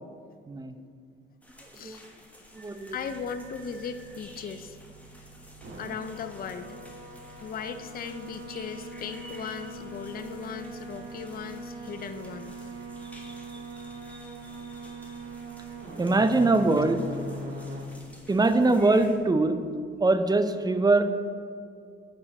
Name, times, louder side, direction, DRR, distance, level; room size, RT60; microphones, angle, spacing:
voice 1, 0.5-0.8 1.8-2.0 2.5-3.0 16.0-17.0 18.3-19.6 20.0-21.0, right 2 dB, 20° right, 9 dB, 0.5 m, -22 dB
sound 1, 1.4-19.2, equal, 5° left, 1.2 m, -52 dB
voice 2, 1.7-2.1 2.9-4.8 5.8-6.7 7.4-12.6, left 6 dB, 45° left, 10 dB, 0.4 m, -37 dB
sound 2, 2.7-19.9, right 1 dB, 65° right, 1.8 m, -42 dB
9.6 x 5.2 x 4.2 m, 2.3 s
cardioid pair, 120°, 21 cm